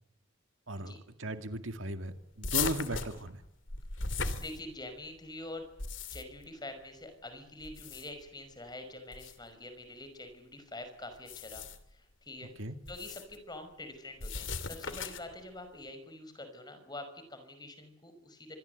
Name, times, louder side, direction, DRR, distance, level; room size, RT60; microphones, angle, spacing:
voice 1, 0.7-3.4 12.6-12.8, right 1 dB, 75° right, 8 dB, 2.2 m, -37 dB
sound 1, 2.4-5.1 5.6-6.5 7.6-8.3 9.1-9.4 11.1-11.9 12.9-13.4 14.2-15.4, left 5 dB, 70° left, 2.7 m, -37 dB
voice 2, 4.0-5.7 6.1-11.7 11.9-12.5 12.9-18.6, left 2 dB, 20° left, 8 dB, 5.6 m, -46 dB
26.0 x 22.0 x 8.1 m, 0.78 s
head